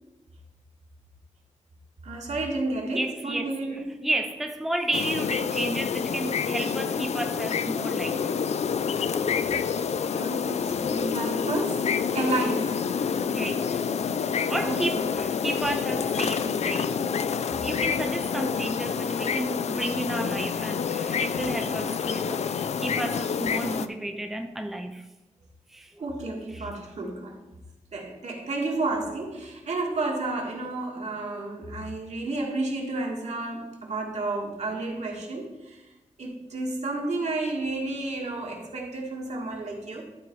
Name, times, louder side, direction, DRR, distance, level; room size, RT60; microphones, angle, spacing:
voice 1, 2.0-4.1 10.1-12.8 14.6-15.2 26.0-27.4 27.9-35.9 36.2-40.0, right 2 dB, 70° right, 1.8 m, -31 dB
voice 2, 2.9-3.5 4.0-8.3 13.3-13.8 14.5-17.0 17.6-25.0 25.7-25.9 26.5-26.7, right 1 dB, ahead, 0.5 m, -32 dB
sound 1, 4.9-23.9, left 6 dB, 65° left, 0.4 m, -28 dB
12.0 x 4.1 x 4.6 m
wide cardioid pair, 145°, 12 cm